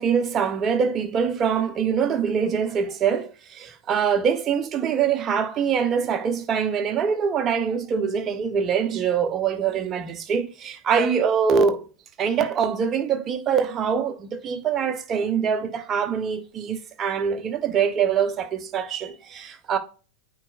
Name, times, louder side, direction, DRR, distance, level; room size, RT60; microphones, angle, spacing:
voice 1, 0.0-11.9 12.2-19.8, right 7 dB, 25° right, 0.9 m, -24 dB
8.7 x 4.8 x 2.5 m
figure-of-eight pair, 90°, 0 cm